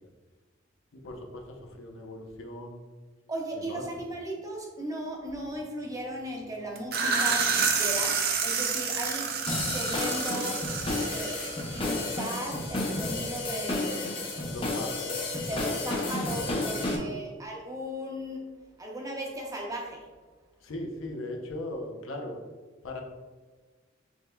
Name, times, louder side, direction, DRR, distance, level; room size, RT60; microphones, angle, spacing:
voice 1, 0.9-2.8 3.7-3.8 14.5-15.2 15.5-15.6 16.5-17.2 20.6-22.4 22.8-23.0, left 1 dB, 85° left, 2 dB, 0.7 m, -38 dB
voice 2, 3.3-9.3 9.7-10.6 11.1-11.3 11.7-14.3 15.5-18.5 18.8-20.1, right 1 dB, 15° right, -1 dB, 0.7 m, -36 dB
sound 1, 6.8-12.3, right 5 dB, 50° right, 0.5 m, -29 dB
sound 2, 9.5-17.0, left 2 dB, 25° left, 0.6 m, -31 dB
6.2 x 3.4 x 2.2 m, 1.3 s
head